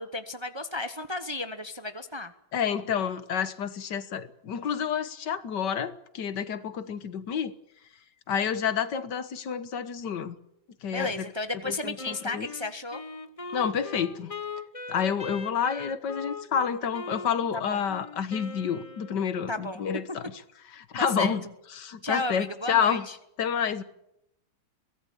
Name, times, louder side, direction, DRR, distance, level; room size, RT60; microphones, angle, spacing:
voice 1, 0.0-2.3 10.9-13.0 17.7-17.8 19.5-19.8 21.0-21.3 22.0-23.2, left 2 dB, 20° right, 0.8 m, -33 dB
voice 2, 2.5-7.5 8.3-10.3 10.8-11.3 11.7-12.5 13.5-14.3 14.9-20.4 20.8-21.4 21.8-23.1 23.4-23.8, left 7 dB, 75° left, 1.9 m, -29 dB
Wind instrument woodwind instrument, 12.0-19.5, left 3 dB, 25° left, 1.0 m, -41 dB
23.0 x 17.5 x 8.8 m
omnidirectional pair, 1.9 m